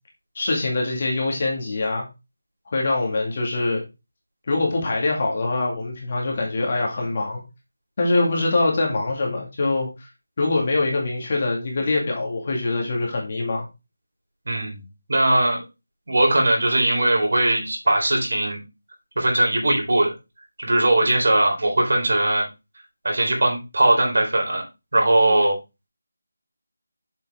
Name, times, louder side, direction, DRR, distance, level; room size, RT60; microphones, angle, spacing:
voice 1, 0.4-2.1 2.7-3.8 4.5-7.4 8.0-9.9 10.4-13.7, left 2 dB, 30° left, -1 dB, 2.2 m, -23 dB
voice 2, 14.5-15.6 16.1-18.6 19.2-20.1 20.6-22.4 23.0-24.6 24.9-25.6, right 1 dB, 60° right, 0 dB, 4.1 m, -20 dB
7.2 x 5.6 x 3.7 m, 0.26 s
figure-of-eight pair, 175°, 0 cm